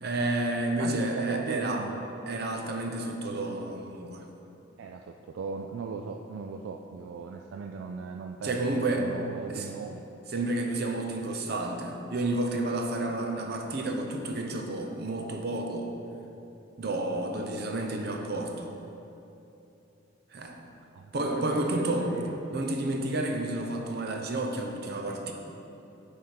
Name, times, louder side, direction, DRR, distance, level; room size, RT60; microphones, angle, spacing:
voice 1, 0.0-1.8 2.3-4.3 8.4-9.1 9.5-9.7 10.3-15.9 16.8-18.7 20.3-20.6 21.1-22.1 22.5-25.3, right 2 dB, 55° right, 3 dB, 0.7 m, -30 dB
voice 2, 0.8-2.0 4.8-10.1 20.9-22.6, right 5 dB, 75° right, 3 dB, 0.3 m, -38 dB
10.0 x 3.6 x 4.4 m, 2.9 s
head